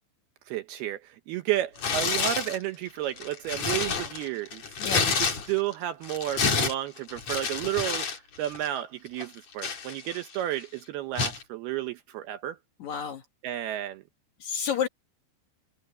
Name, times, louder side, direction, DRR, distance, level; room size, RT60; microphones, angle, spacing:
voice 1, 0.5-4.7 4.9-12.6 13.4-14.0, right 13 dB, 75° right, 2.5 m, -32 dB
Tearing, 1.8-2.6 3.1-5.7 6.0-8.2 8.4-8.7 9.2-10.4 11.2-11.4, left 5 dB, 40° left, 3.7 m, -29 dB
voice 2, 4.8-5.2 12.8-13.2 14.4-14.9, left 8 dB, 70° left, 1.8 m, -30 dB
omnidirectional pair, 5.2 m